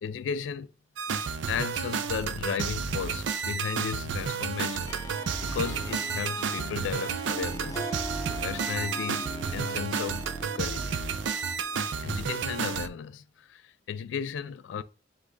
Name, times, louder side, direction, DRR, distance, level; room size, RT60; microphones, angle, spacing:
voice 1, 0.0-0.7 1.5-4.9 5.4-11.0 12.0-14.8, left 7 dB, 85° left, 0.3 m, -35 dB
sound 1, 1.0-12.9, right 6 dB, 85° right, 0.4 m, -31 dB
Harp, 4.8-12.6, equal, 20° left, 0.4 m, -42 dB
5.1 x 2.4 x 3.7 m
head